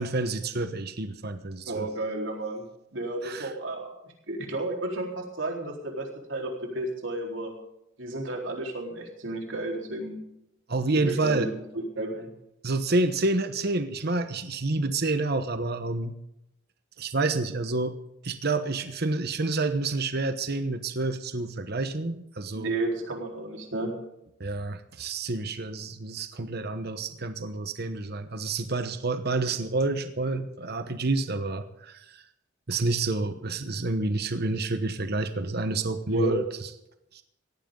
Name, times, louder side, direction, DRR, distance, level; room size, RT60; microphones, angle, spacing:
voice 1, 0.0-1.9 3.2-3.5 10.7-11.5 12.6-16.1 17.0-17.9 18.2-22.7 24.4-32.2 32.7-36.7 37.1-37.2, right 3 dB, 55° right, 9 dB, 1.1 m, -29 dB
voice 2, 1.7-2.6 2.9-3.9 4.3-7.5 8.0-10.2 11.1-12.3 22.5-23.9 36.1-36.4, right 1 dB, 70° right, 1 dB, 4.1 m, -32 dB
17.5 x 15.0 x 3.9 m, 0.82 s
head